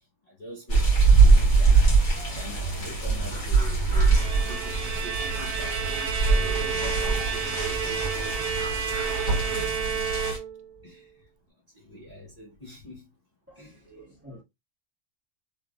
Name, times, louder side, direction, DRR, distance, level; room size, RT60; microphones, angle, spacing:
voice 1, 0.3-5.9 6.2-9.2 9.5-9.7 10.8-11.2 11.7-13.1 13.6-13.8, equal, 30° left, 1.0 m, -44 dB
sound 1, 0.7-10.4, right 4 dB, 60° left, 1.7 m, -23 dB
Bowed string instrument, 3.8-10.8, right 7 dB, 80° right, 1.0 m, -31 dB
voice 2, 13.5-14.4, equal, 10° right, 1.8 m, -49 dB
3.2 x 2.9 x 2.4 m
omnidirectional pair, 1.4 m